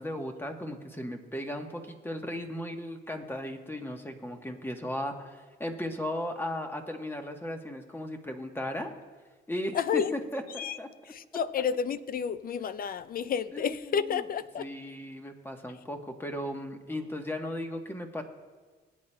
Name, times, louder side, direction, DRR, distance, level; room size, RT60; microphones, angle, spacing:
voice 1, 0.0-8.9 9.5-10.9 13.5-14.2 14.6-18.2, left 1 dB, 10° left, 1.0 m, -36 dB
voice 2, 9.7-10.1 10.6-10.8 11.1-14.7, left 7 dB, 45° left, 0.4 m, -30 dB
20.0 x 8.5 x 2.2 m
cardioid pair, 90°, 20 cm